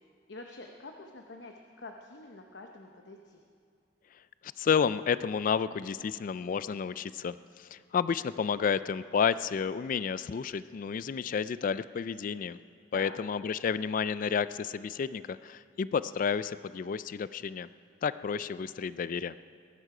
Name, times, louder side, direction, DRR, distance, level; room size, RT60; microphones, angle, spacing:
voice 1, 0.3-3.4 12.9-13.2, left 3 dB, 75° left, 3 dB, 0.9 m, -46 dB
voice 2, 4.4-12.6 12.9-17.7 18.0-19.4, left 6 dB, 50° left, 15 dB, 0.3 m, -31 dB
21.5 x 11.5 x 4.9 m, 2.2 s
head